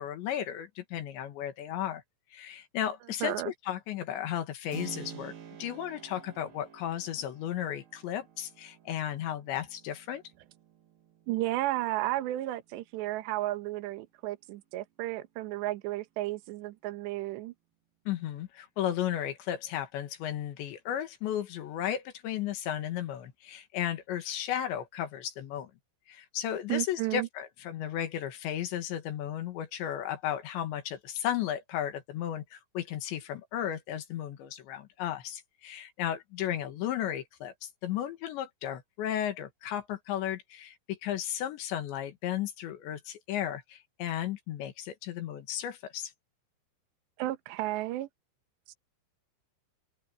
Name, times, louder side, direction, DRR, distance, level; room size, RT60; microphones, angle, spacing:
voice 1, 0.0-2.0 2.3-5.3 5.6-10.2 18.1-25.7 26.1-46.1, left 11 dB, 70° left, 3.8 m, -34 dB
voice 2, 3.2-3.5 11.3-17.5 26.7-27.3 47.2-48.1 48.7-48.8, right 16 dB, 70° right, 3.3 m, -33 dB
Keyboard (musical), 4.7-13.3, right 9 dB, 55° right, 4.3 m, -50 dB
open air
omnidirectional pair, 5.5 m